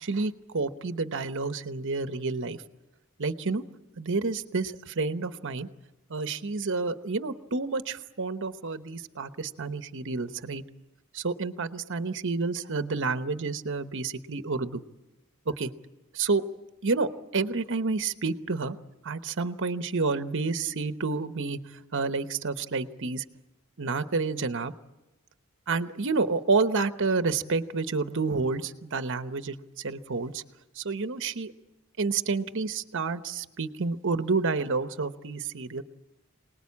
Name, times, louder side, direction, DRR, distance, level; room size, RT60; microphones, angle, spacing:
voice 1, 0.0-2.6 3.2-3.6 4.0-5.7 6.1-10.6 11.1-14.9 15.5-15.7 16.1-16.4 16.8-18.8 19.0-21.6 21.9-23.2 23.8-24.7 25.7-30.4 30.8-31.5 32.0-35.8, right 4 dB, 60° right, 10 dB, 1.0 m, -29 dB
26.5 x 19.5 x 8.5 m, 1.0 s
head